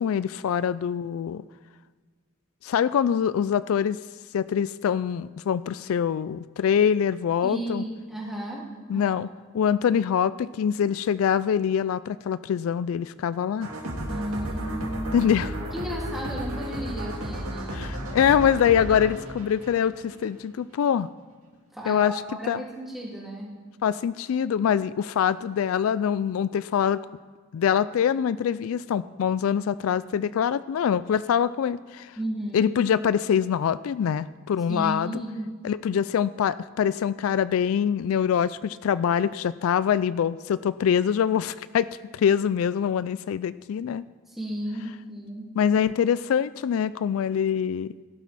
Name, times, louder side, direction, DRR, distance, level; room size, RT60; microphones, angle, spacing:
voice 1, 0.0-1.4 2.6-4.0 4.3-7.8 8.9-9.3 9.5-13.7 15.1-15.5 17.7-21.1 21.9-22.1 22.5-22.6 23.8-27.0 27.5-32.2 32.5-35.1 35.6-41.9 42.1-44.0 45.6-47.9, left 8 dB, 75° left, 17 dB, 0.3 m, -24 dB
voice 2, 7.4-8.7 8.9-9.2 14.1-15.3 15.7-18.2 21.7-23.5 32.2-32.7 34.7-35.5 44.3-45.5, right 1 dB, ahead, -4 dB, 2.6 m, -34 dB
sound 1, 13.6-20.4, right 1 dB, 85° right, 2.2 m, -33 dB
17.0 x 11.5 x 4.1 m, 1.5 s
head